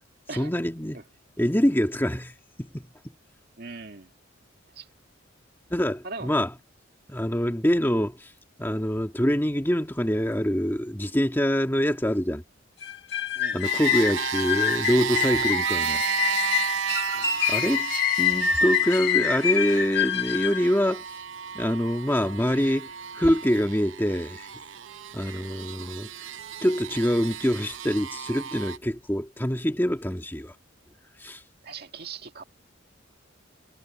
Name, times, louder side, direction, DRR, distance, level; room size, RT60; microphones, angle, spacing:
voice 1, 0.4-1.0 1.4-2.9 5.7-6.5 7.1-8.3 8.6-12.4 13.5-16.0 17.5-21.0 21.5-22.9 23.1-24.5 25.1-26.3 26.6-30.5 31.2-31.4, equal, 10° left, 1.7 m, -25 dB
voice 2, 3.6-4.1 4.7-4.9 6.0-6.3 13.4-13.7 17.1-17.4 31.6-32.4, right 4 dB, 50° right, 2.1 m, -40 dB
sound 1, 12.8-20.6, left 8 dB, 55° left, 1.9 m, -26 dB
sound 2, 13.6-28.8, right 7 dB, 70° right, 0.7 m, -33 dB
head